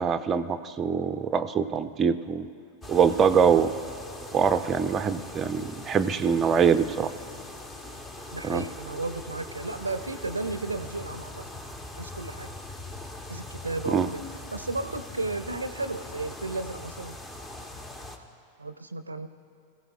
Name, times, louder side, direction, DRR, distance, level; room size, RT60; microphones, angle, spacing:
voice 1, 0.0-2.5 2.9-3.7 4.3-7.1 8.4-8.6 13.9-14.1, right 6 dB, 25° right, 9 dB, 0.5 m, -23 dB
sound 1, 2.8-18.2, left 2 dB, 15° left, 1.0 m, -41 dB
voice 2, 8.3-11.4 11.9-12.5 13.3-14.2 14.5-17.2 18.6-19.3, right 2 dB, 80° right, 11 dB, 0.5 m, -34 dB
23.0 x 15.0 x 2.5 m, 2.7 s
figure-of-eight pair, 90°, 0 cm